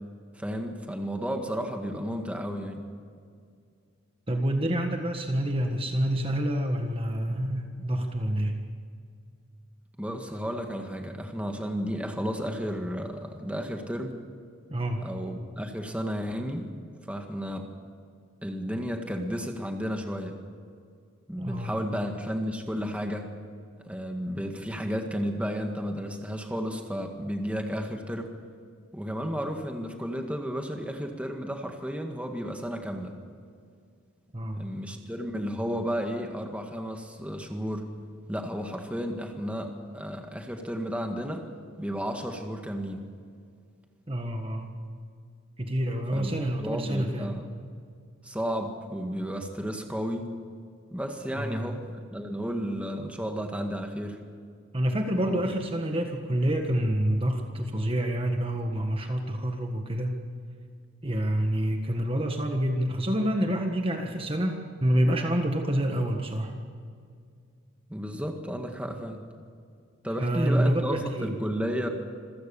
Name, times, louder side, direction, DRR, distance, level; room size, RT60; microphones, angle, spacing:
voice 1, 0.3-2.8 10.0-14.2 15.0-16.7 17.1-17.7 18.4-20.4 21.3-23.3 23.9-28.3 28.9-33.1 34.5-37.9 38.3-41.5 41.8-43.0 46.1-47.5 48.2-50.2 50.9-54.2 55.2-55.4 67.9-69.2 70.0-71.9, equal, 5° right, 3 dB, 1.8 m, -33 dB
voice 2, 4.3-8.5 14.7-15.0 21.4-21.8 34.3-34.6 44.1-44.7 45.6-47.3 51.3-51.6 54.7-60.2 61.0-66.5 70.2-71.4, right 1 dB, 25° right, 4 dB, 1.6 m, -27 dB
26.5 x 16.0 x 7.1 m, 2.2 s
head